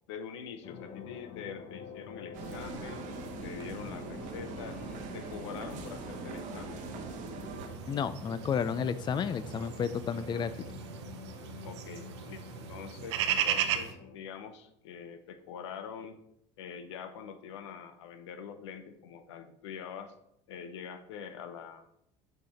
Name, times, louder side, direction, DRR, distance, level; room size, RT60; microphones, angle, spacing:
voice 1, 0.1-4.8 5.1-6.8 11.6-12.4 12.7-16.2 16.6-20.1 20.5-21.8, left 7 dB, 90° left, 9 dB, 0.7 m, -44 dB
sound 1, 0.6-14.1, left 7 dB, 60° left, 0.9 m, -48 dB
sound 2, 2.3-7.7, right 4 dB, 65° right, 1.2 m, -41 dB
sound 3, 7.6-13.9, right 9 dB, 90° right, 0.6 m, -36 dB
voice 2, 7.9-10.5, left 7 dB, 35° left, 13 dB, 0.4 m, -31 dB
6.6 x 4.9 x 4.2 m, 0.77 s
supercardioid pair, 80°, 14 cm